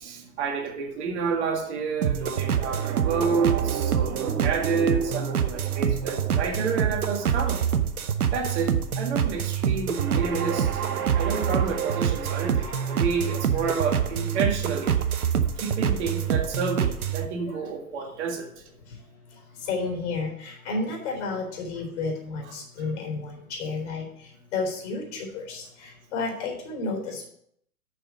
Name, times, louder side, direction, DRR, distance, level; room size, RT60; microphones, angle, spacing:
voice 1, 0.0-7.6 8.3-10.8 11.1-14.9 15.6-18.5, right 5 dB, 50° right, 3 dB, 1.9 m, -29 dB
sound 1, 2.0-17.3, right 8 dB, 75° right, 0.9 m, -26 dB
voice 2, 13.3-13.9 19.7-24.0 24.5-27.3, left 3 dB, 50° left, 1 dB, 4.0 m, -32 dB
6.9 x 5.6 x 7.4 m, 0.69 s
figure-of-eight pair, 110°, 44 cm